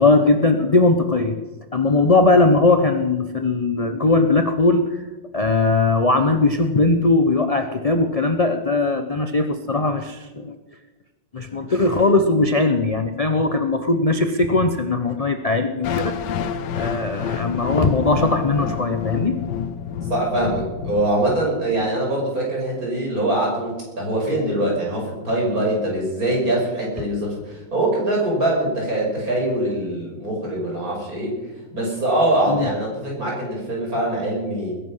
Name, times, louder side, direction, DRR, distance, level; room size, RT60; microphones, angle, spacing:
voice 1, 0.0-1.3 1.7-5.0 5.3-10.5 11.3-16.1 16.7-19.4 32.5-32.7, left 3 dB, 35° left, 7 dB, 0.6 m, -19 dB
sound 1, 15.8-21.9, left 7 dB, 75° left, 1.5 m, -28 dB
voice 2, 20.1-31.4 31.7-34.7, right 1 dB, 50° right, -2 dB, 6.2 m, -23 dB
20.5 x 11.0 x 5.6 m, 1.2 s
omnidirectional pair, 1.9 m